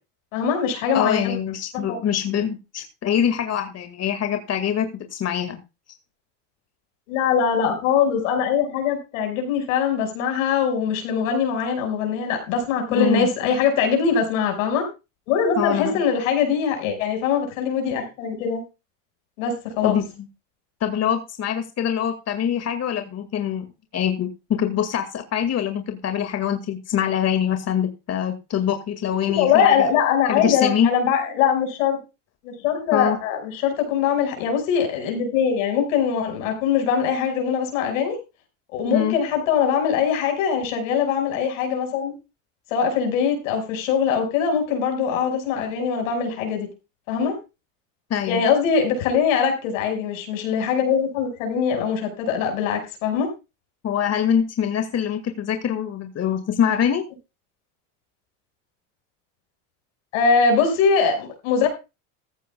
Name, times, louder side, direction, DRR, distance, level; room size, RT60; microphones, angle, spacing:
voice 1, 0.3-1.3 1.7-2.0 7.1-14.9 15.3-18.6 19.4-20.0 29.3-32.0 32.4-38.2 38.7-42.1 42.7-46.7 47.1-47.4 48.3-53.3 60.1-61.7, left 6 dB, 90° left, 4 dB, 5.7 m, -22 dB
voice 2, 0.9-5.6 12.9-13.3 15.6-16.0 19.8-20.0 20.8-23.7 23.9-29.9 30.3-30.9 32.9-33.2 38.9-39.2 48.1-48.4 53.8-57.0, left 9 dB, 40° left, 7 dB, 2.1 m, -24 dB
15.0 x 14.5 x 2.3 m, 0.27 s
supercardioid pair, 100°, 39 cm